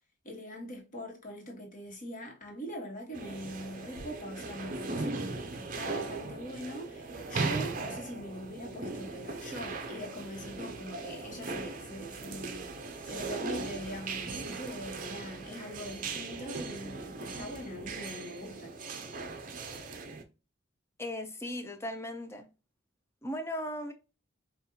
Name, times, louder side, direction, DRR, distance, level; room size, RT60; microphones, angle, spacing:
voice 1, 0.2-12.7 13.0-18.7, equal, 40° left, 1.2 m, -42 dB
sound 1, 1.9-2.8 3.2-3.4 3.9-5.4 6.7-7.8 8.6-9.9, equal, 70° left, 0.8 m, -59 dB
sound 2, 3.1-20.2, right 3 dB, 40° right, 0.5 m, -38 dB
voice 2, 21.0-22.5 23.2-23.9, left 1 dB, 15° left, 0.5 m, -37 dB
5.3 x 2.4 x 2.7 m
head